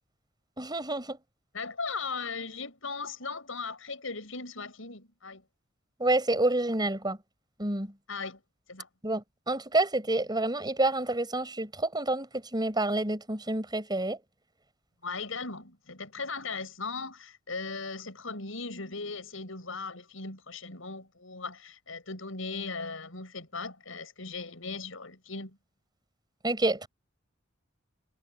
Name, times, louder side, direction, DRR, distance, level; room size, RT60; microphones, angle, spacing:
voice 1, 0.6-1.2 6.0-7.2 7.6-7.9 9.0-14.2 26.4-26.9, right 2 dB, 20° right, 6.9 m, -28 dB
voice 2, 1.5-5.4 8.1-8.4 8.7-8.9 15.0-25.6, left 4 dB, 80° left, 7.4 m, -38 dB
head